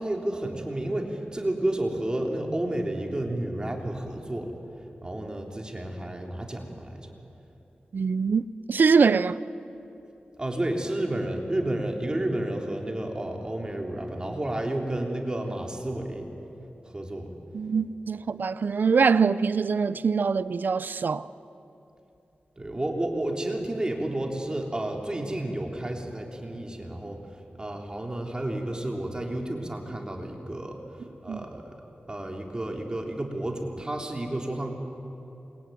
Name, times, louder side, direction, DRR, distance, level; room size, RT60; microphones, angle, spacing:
voice 1, 0.0-4.5 5.0-7.1 10.4-16.3 16.9-17.3 22.6-27.2 27.6-30.8 31.2-31.6 32.1-34.7, right 1 dB, 25° right, 3.4 m, -31 dB
voice 2, 7.9-9.4 17.5-21.3 31.3-31.4, right 5 dB, 70° right, 0.6 m, -23 dB
27.5 x 22.5 x 9.4 m
wide cardioid pair, 80°, 3 cm